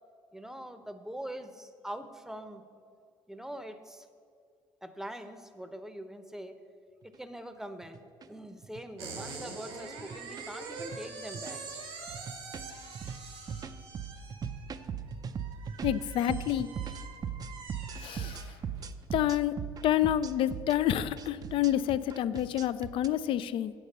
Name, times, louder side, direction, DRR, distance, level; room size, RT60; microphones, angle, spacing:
voice 1, 0.3-2.6 3.3-4.1 4.8-6.6 7.0-8.0 8.3-11.6, right 1 dB, 5° right, 9 dB, 0.7 m, -43 dB
sound 1, 7.0-7.1 7.8-8.2 8.6-8.8 9.2-9.4 10.0-10.5 10.8-11.0 11.3-11.7 12.1-23.1, right 7 dB, 40° right, 0.4 m, -39 dB
sound 2, 9.0-18.9, right 4 dB, 90° right, 1.4 m, -45 dB
voice 2, 15.8-16.7 18.0-18.4 19.1-19.5 19.8-23.7, left 12 dB, 65° left, 15 dB, 0.4 m, -28 dB
8.3 x 6.6 x 5.4 m, 2.3 s
supercardioid pair, 80°, 10 cm